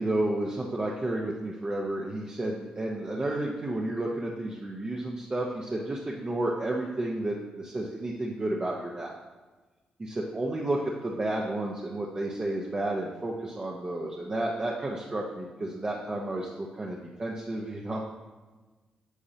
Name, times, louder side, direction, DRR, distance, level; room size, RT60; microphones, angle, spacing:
voice 1, 0.0-9.1 10.0-18.1, right 1 dB, 30° right, -2 dB, 0.9 m, -31 dB
8.3 x 7.0 x 2.8 m, 1.3 s
cardioid pair, 65°, 3 cm